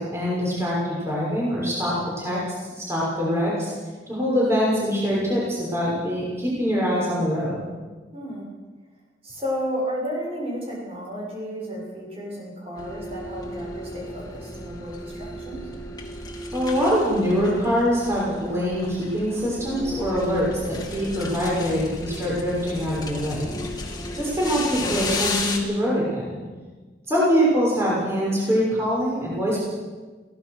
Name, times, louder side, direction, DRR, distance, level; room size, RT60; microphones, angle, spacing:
voice 1, 0.0-2.4 2.8-3.7 4.1-7.7 16.5-23.6 24.2-26.4 27.1-29.6, equal, 15° right, -6 dB, 6.3 m, -24 dB
voice 2, 8.1-8.5 9.2-15.6, equal, 35° right, -3 dB, 7.3 m, -32 dB
sound 1, 12.7-25.6, left 2 dB, 25° left, 2.7 m, -34 dB
22.5 x 17.0 x 6.6 m, 1.3 s
head